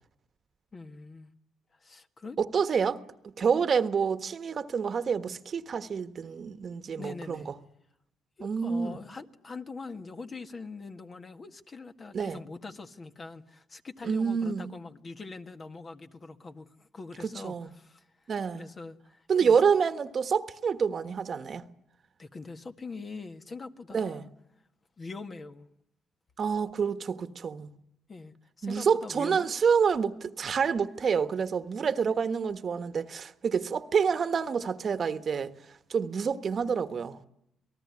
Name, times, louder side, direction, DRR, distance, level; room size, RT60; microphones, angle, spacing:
voice 1, 0.7-1.3 1.8-2.4 7.0-7.5 8.4-18.1 18.5-19.6 22.2-24.3 25.0-25.7 28.1-29.5, left 4 dB, 35° left, 1.7 m, -43 dB
voice 2, 2.4-7.5 8.4-9.0 12.1-12.4 14.0-14.7 17.2-17.7 18.3-18.6 19.3-21.6 23.9-24.3 26.4-27.7 28.6-35.5 35.9-37.2, right 6 dB, 50° right, 1.3 m, -28 dB
27.5 x 18.5 x 9.7 m
cardioid pair, 90°, 0 cm